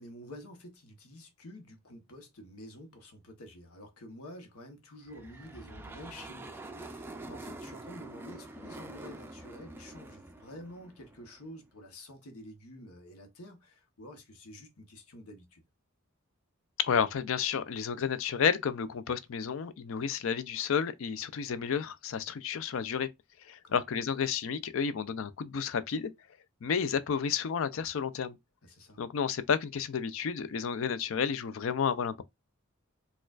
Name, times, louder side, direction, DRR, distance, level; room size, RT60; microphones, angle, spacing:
voice 1, 0.0-15.6 23.6-23.8 28.6-29.0, left 1 dB, 90° left, 0.9 m, -49 dB
sound 1, 5.1-11.5, right 2 dB, 10° right, 0.3 m, -46 dB
voice 2, 16.8-23.1 23.5-26.1 26.6-28.4 29.0-32.2, left 7 dB, 65° left, 0.4 m, -31 dB
4.2 x 2.3 x 2.4 m
head